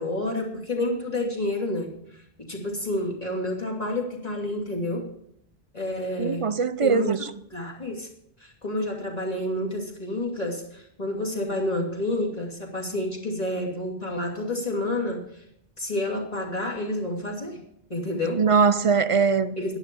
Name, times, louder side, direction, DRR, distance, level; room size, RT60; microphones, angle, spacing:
voice 1, 0.0-1.9 2.4-5.1 5.7-6.5 6.8-7.1 7.5-8.1 8.4-15.4 15.8-17.6 17.9-18.4 19.6-19.8, left 1 dB, 40° left, 2.8 m, -29 dB
voice 2, 6.2-7.2 18.4-19.5, right 5 dB, 40° right, 0.5 m, -21 dB
11.5 x 11.0 x 5.3 m
omnidirectional pair, 1.1 m